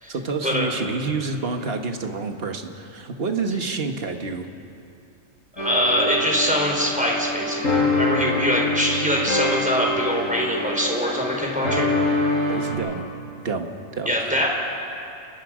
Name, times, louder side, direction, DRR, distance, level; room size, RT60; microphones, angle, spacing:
voice 1, 0.1-4.5 12.5-13.0 13.4-14.4, right 4 dB, 50° right, 5 dB, 1.6 m, -28 dB
voice 2, 5.5-11.9 14.1-14.5, equal, 5° right, -2 dB, 4.2 m, -23 dB
sound 1, 5.6-12.7, left 2 dB, 85° left, 7.2 m, -25 dB
29.0 x 21.5 x 5.1 m, 2.6 s
omnidirectional pair, 1.3 m